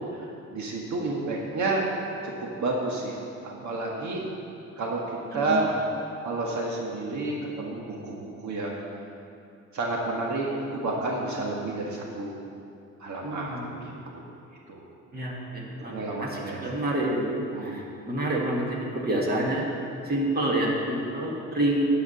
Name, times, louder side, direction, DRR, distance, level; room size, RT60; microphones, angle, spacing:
voice 1, 0.1-1.9 2.2-4.2 4.8-5.0 5.3-5.7 6.2-8.8 9.7-12.3 13.0-14.2 14.7-14.8 15.9-16.6 17.5-17.8, right 2 dB, 70° right, -2 dB, 1.6 m, -30 dB
voice 2, 5.3-5.6 13.2-13.8 15.1-17.3 17.6-19.7 20.0-21.8, right 1 dB, 30° right, -2 dB, 2.1 m, -28 dB
12.0 x 5.0 x 8.1 m, 2.6 s
cardioid pair, 90°, 30 cm